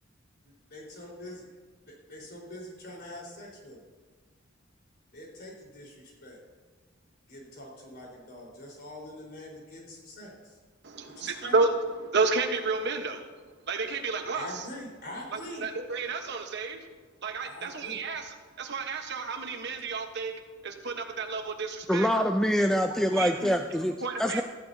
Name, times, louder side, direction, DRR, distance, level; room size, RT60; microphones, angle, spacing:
voice 1, 0.7-1.5 1.8-3.8 5.1-6.4 7.3-10.6 11.0-11.5 13.8-14.0 14.3-15.6 17.4-18.0, left 1 dB, 55° left, -3 dB, 4.5 m, -44 dB
voice 2, 10.8-11.7 12.0-13.3 13.7-14.6 15.3-16.9 17.2-20.3 20.6-22.1 22.9-23.5 24.0-24.4, right 4 dB, 60° right, 4 dB, 1.2 m, -31 dB
voice 3, 21.9-24.4, equal, 5° left, 5 dB, 0.4 m, -25 dB
17.5 x 14.0 x 2.8 m, 1.4 s
head